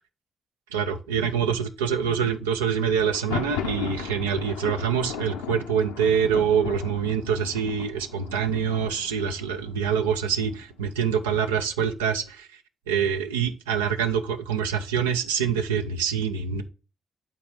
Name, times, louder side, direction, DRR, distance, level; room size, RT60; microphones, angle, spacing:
voice 1, 0.7-12.5 12.9-16.6, right 7 dB, 90° right, 0.5 m, -25 dB
Thunder, 3.0-10.8, left 7 dB, 85° left, 0.6 m, -36 dB
8.4 x 3.5 x 5.8 m
hypercardioid pair, 45°, 0 cm